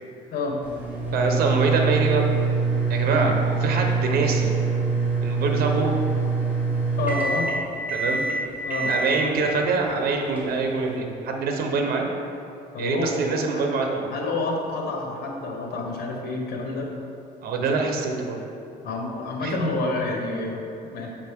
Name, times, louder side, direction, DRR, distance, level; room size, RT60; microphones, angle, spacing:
sound 1, 0.6-10.9, right 4 dB, 10° right, 1.5 m, -25 dB
voice 1, 1.1-2.2 2.9-4.5 5.2-5.9 7.9-8.2 8.8-12.1 12.8-14.1 17.4-18.4 19.4-19.8, right 4 dB, 65° right, 2 dB, 1.0 m, -25 dB
voice 2, 7.0-7.5 8.6-8.9 12.7-13.2 13.5-13.6 14.1-16.9 17.5-17.7 18.8-21.1, left 3 dB, 65° left, 0 dB, 1.3 m, -28 dB
7.3 x 5.2 x 3.6 m, 2.6 s
cardioid pair, 110°, 17 cm